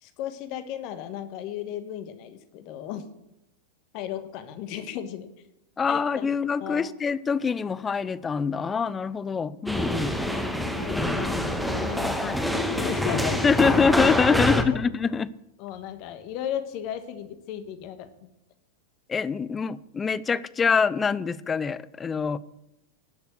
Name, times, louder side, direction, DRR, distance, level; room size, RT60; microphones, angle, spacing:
voice 1, 0.0-3.0 3.9-5.3 5.9-6.3 6.6-6.9 10.2-10.5 10.7-12.5 12.7-13.7 14.3-14.8 15.6-18.3, left 10 dB, 45° left, 1.5 m, -35 dB
voice 2, 5.8-10.2 12.2-12.4 13.4-15.3 19.1-22.4, left 5 dB, 20° left, 0.6 m, -25 dB
sound 1, 9.7-14.6, equal, ahead, 1.5 m, -26 dB
18.5 x 6.9 x 6.6 m
figure-of-eight pair, 90°, 0 cm